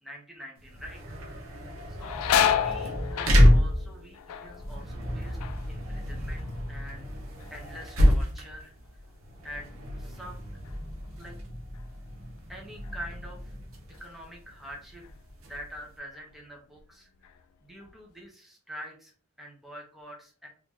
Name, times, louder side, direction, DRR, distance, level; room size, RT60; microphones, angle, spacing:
voice 1, 0.0-1.7 2.0-2.1 2.5-5.4 5.7-7.1 7.5-9.0 9.4-9.7 10.0-10.4 11.2-11.4 12.5-13.6 14.0-15.1 15.4-17.4 17.6-19.1 19.4-20.5, equal, ahead, -2 dB, 0.7 m, -45 dB
sound 1, 0.6-15.9, equal, 70° right, 0.9 m, -28 dB
sound 2, 1.7-7.1 7.4-8.0 8.5-11.4 11.7-11.9 12.8-13.0 13.5-14.6 15.0-15.2 15.8-16.4 16.8-17.9, left 9 dB, 90° left, 0.3 m, -32 dB
3.0 x 2.7 x 3.6 m, 0.43 s
head